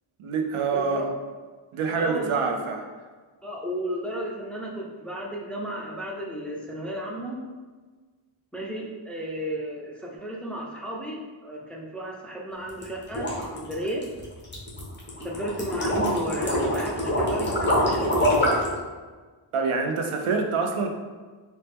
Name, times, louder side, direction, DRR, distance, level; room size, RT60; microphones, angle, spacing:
voice 1, 0.2-1.1 1.7-2.8 19.5-20.9, right 4 dB, 85° right, 4 dB, 0.6 m, -26 dB
voice 2, 0.7-1.1 1.9-2.5 3.4-7.4 8.5-14.0 15.2-18.6, right 1 dB, ahead, -3 dB, 0.5 m, -33 dB
sound 1, 12.7-18.7, equal, 20° left, 0.9 m, -25 dB
4.1 x 2.1 x 3.4 m, 1.4 s
wide cardioid pair, 100°, 49 cm